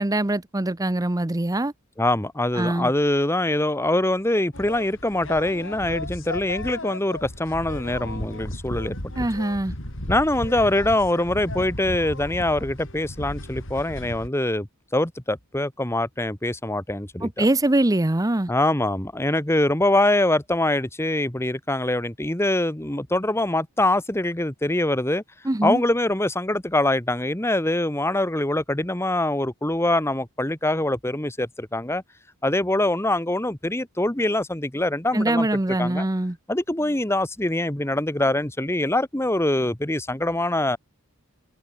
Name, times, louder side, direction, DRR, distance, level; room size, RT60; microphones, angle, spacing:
voice 1, 0.0-1.7 2.6-2.9 9.2-9.7 17.2-18.5 25.4-25.8 35.1-36.4, right 1 dB, 15° right, 0.7 m, -23 dB
voice 2, 2.0-9.2 10.1-14.7 14.9-17.5 18.5-25.2 25.6-32.0 32.4-35.5 35.8-36.1 36.5-40.8, left 1 dB, 10° left, 1.4 m, -24 dB
sound 1, 4.5-14.3, left 1 dB, 60° left, 6.2 m, -35 dB
head